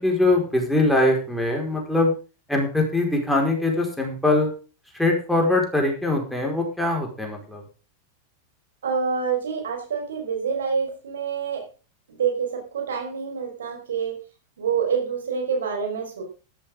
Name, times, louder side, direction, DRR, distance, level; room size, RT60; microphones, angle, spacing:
voice 1, 0.0-2.1 2.5-4.5 4.9-7.6, left 2 dB, ahead, 1 dB, 4.9 m, -22 dB
voice 2, 8.8-11.6 12.1-14.2 14.6-16.2, right 6 dB, 65° right, 2 dB, 5.1 m, -27 dB
13.5 x 13.5 x 3.8 m, 0.35 s
figure-of-eight pair, 90°, 0 cm